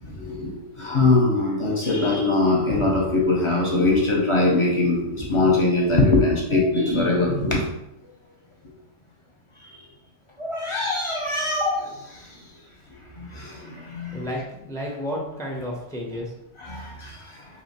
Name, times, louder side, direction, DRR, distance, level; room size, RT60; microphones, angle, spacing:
voice 1, 0.0-7.7 10.4-12.4 13.1-14.3 16.6-17.4, left 2 dB, 30° left, -3 dB, 0.8 m, -22 dB
voice 2, 14.1-16.3, equal, 5° left, -1 dB, 0.5 m, -31 dB
2.9 x 2.7 x 4.2 m, 0.86 s
omnidirectional pair, 1.2 m